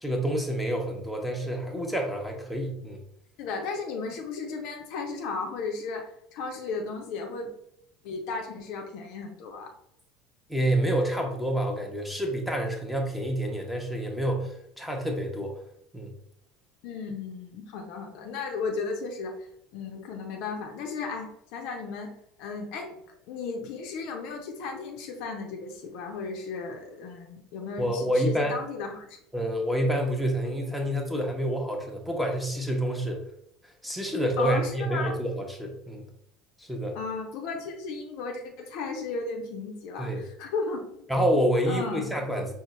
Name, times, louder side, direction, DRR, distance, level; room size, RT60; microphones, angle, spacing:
voice 1, 0.0-3.0 10.5-15.5 15.9-16.1 27.8-28.6 29.3-33.2 33.8-36.0 36.6-37.0 40.0-40.3 41.1-42.5, right 1 dB, ahead, 2 dB, 0.7 m, -28 dB
voice 2, 3.4-7.5 8.0-9.7 16.8-19.3 19.7-22.1 22.4-23.0 23.3-29.2 34.4-35.1 36.9-41.0 41.7-42.1, left 4 dB, 55° left, 3 dB, 0.6 m, -35 dB
5.2 x 2.0 x 3.0 m, 0.73 s
figure-of-eight pair, 65°, 0 cm